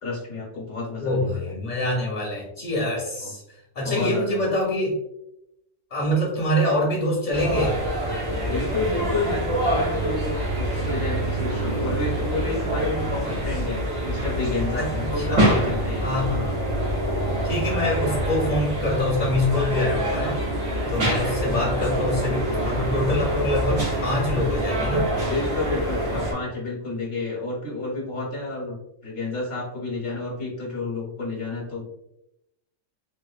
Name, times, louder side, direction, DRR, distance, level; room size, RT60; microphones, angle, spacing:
voice 1, 0.0-1.5 3.2-3.3 3.8-4.4 8.4-16.1 25.2-31.9, left 2 dB, 70° left, -3 dB, 1.1 m, -30 dB
voice 2, 1.0-3.4 3.7-5.0 5.9-7.8 14.7-15.6 16.0-16.6 17.4-20.4 20.9-25.1, left 1 dB, 45° left, -4 dB, 0.8 m, -25 dB
sound 1, 7.3-26.3, right 1 dB, 80° right, 1.7 m, -26 dB
4.0 x 2.5 x 2.3 m, 0.82 s
omnidirectional pair, 1.4 m